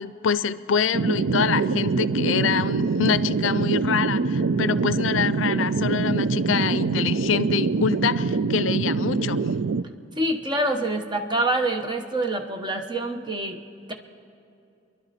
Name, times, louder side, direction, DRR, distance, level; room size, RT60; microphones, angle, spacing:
voice 1, 0.0-9.4, left 7 dB, 80° left, 15 dB, 0.5 m, -26 dB
sound 1, 0.9-9.8, right 4 dB, 75° right, 0.4 m, -24 dB
voice 2, 10.2-13.6 13.9-14.0, right 1 dB, 25° right, 4 dB, 1.0 m, -26 dB
29.0 x 11.5 x 4.2 m, 2.7 s
head